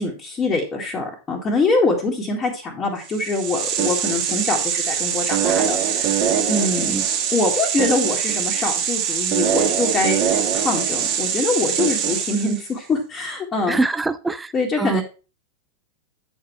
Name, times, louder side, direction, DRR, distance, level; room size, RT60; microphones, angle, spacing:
voice 1, 0.0-6.9 7.3-10.2 10.5-13.8 14.5-15.0, left 3 dB, 20° left, -5 dB, 2.0 m, -24 dB
sound 1, 3.1-12.7, right 8 dB, 40° right, 1.6 m, -22 dB
voice 2, 13.7-15.0, right 3 dB, 10° right, 13 dB, 0.6 m, -24 dB
8.6 x 5.4 x 4.5 m, 0.34 s
figure-of-eight pair, 90°, 0 cm